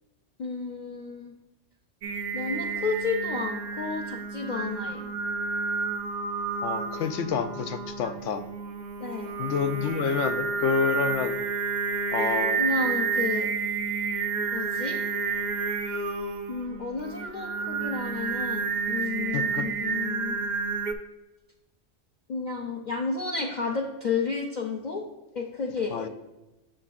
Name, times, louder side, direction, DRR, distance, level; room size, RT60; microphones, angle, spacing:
voice 1, 0.4-1.3 2.3-5.1 9.0-9.3 12.6-13.5 14.5-15.0 16.5-20.4 22.3-25.0 25.3-26.1, left 4 dB, 45° left, -1 dB, 0.7 m, -31 dB
Singing, 2.0-20.9, right 5 dB, 55° right, 0.5 m, -30 dB
voice 2, 6.6-8.5 9.4-11.4 12.1-12.7 19.3-19.7 25.9-26.1, left 6 dB, 90° left, 9 dB, 0.9 m, -29 dB
7.6 x 6.7 x 2.4 m, 1.0 s
omnidirectional pair, 1.2 m